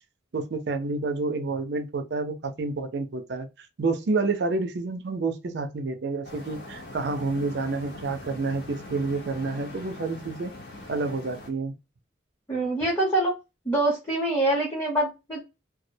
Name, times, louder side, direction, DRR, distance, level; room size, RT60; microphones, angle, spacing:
voice 1, 0.3-10.5 10.9-11.7, right 3 dB, 60° right, 0.4 m, -29 dB
sound 1, 6.2-11.5, left 2 dB, 60° left, 0.8 m, -42 dB
voice 2, 12.5-13.3 13.7-15.4, right 1 dB, 10° left, 0.7 m, -25 dB
2.3 x 2.1 x 2.6 m
head